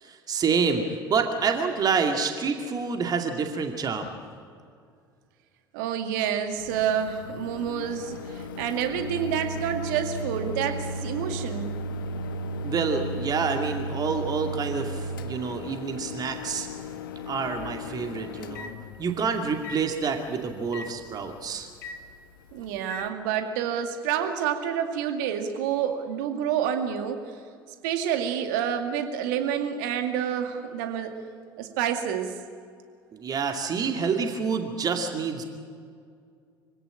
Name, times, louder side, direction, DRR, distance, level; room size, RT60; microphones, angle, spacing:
voice 1, 0.0-4.2 12.6-16.7 17.3-18.7 19.0-21.7 33.1-35.4, right 5 dB, 35° right, 4 dB, 2.4 m, -28 dB
voice 2, 5.7-11.7 22.5-27.3 27.8-31.1 31.6-32.4, right 9 dB, 60° right, 6 dB, 2.2 m, -28 dB
Microwave oven, 6.6-23.1, equal, 70° left, 1.2 m, -36 dB
25.0 x 17.0 x 8.8 m, 2.2 s
figure-of-eight pair, 65°, 11 cm